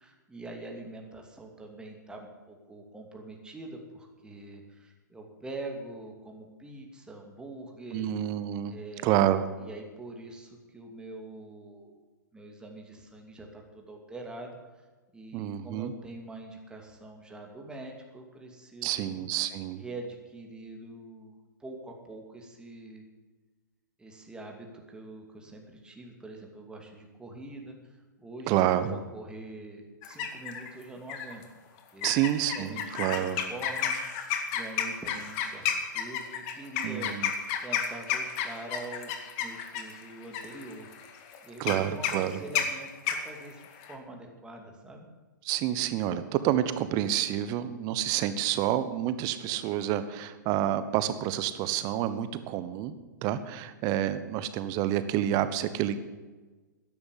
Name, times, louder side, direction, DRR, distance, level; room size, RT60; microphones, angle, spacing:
voice 1, 0.0-8.1 8.7-9.3 9.6-12.0 12.3-14.9 15.1-19.2 19.8-23.0 24.0-28.5 28.9-31.4 31.9-32.1 32.5-35.7 35.9-37.2 37.6-39.1 39.4-40.9 41.4-45.1, right 2 dB, 10° right, 2 dB, 2.5 m, -44 dB
voice 2, 7.9-8.8 9.0-9.5 15.3-15.9 18.8-19.8 28.5-29.0 32.0-33.4 36.8-37.3 41.6-42.4 45.4-52.9 53.2-56.0, right 12 dB, 35° right, 12 dB, 1.2 m, -28 dB
sound 1, 30.0-30.7 31.1-31.4 32.0-43.9, left 8 dB, 40° left, 2.1 m, -32 dB
12.5 x 11.0 x 8.4 m, 1.3 s
figure-of-eight pair, 115°, 10 cm